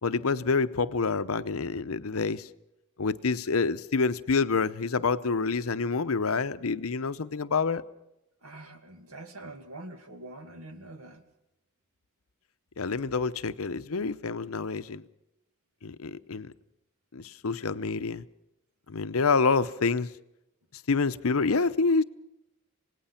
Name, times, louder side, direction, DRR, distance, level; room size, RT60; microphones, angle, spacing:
voice 1, 0.0-2.5 3.0-7.8 12.8-15.0 15.8-16.5 17.1-18.2 18.9-20.1 20.9-22.0, left 4 dB, 70° left, 0.7 m, -27 dB
voice 2, 8.4-11.2, right 2 dB, 75° right, 2.2 m, -45 dB
27.0 x 18.5 x 5.8 m
head